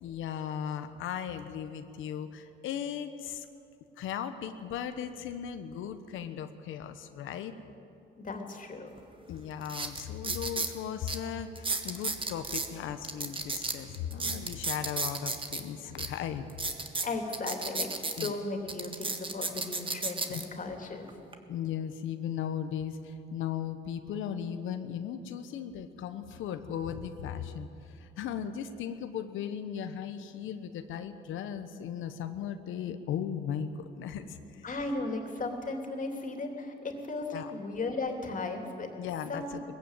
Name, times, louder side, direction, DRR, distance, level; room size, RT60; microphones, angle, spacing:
voice 1, 0.0-3.5 4.0-7.6 9.3-16.7 18.2-18.3 20.3-20.4 21.5-34.6 37.3-37.5 39.0-39.6, left 8 dB, 85° left, 8 dB, 1.1 m, -37 dB
voice 2, 8.2-8.9 17.0-21.1 34.6-38.9 39.3-39.5, left 3 dB, 40° left, 4 dB, 3.1 m, -36 dB
sound 1, 9.0-9.1 9.6-10.7 11.1-11.2 11.6-12.7 13.0-15.6 16.0-16.1 16.5-18.3 18.7-20.4 21.1-21.3, right 3 dB, 25° right, 1.7 m, -33 dB
20.0 x 15.0 x 9.0 m, 2.7 s
cardioid pair, 90°, 20 cm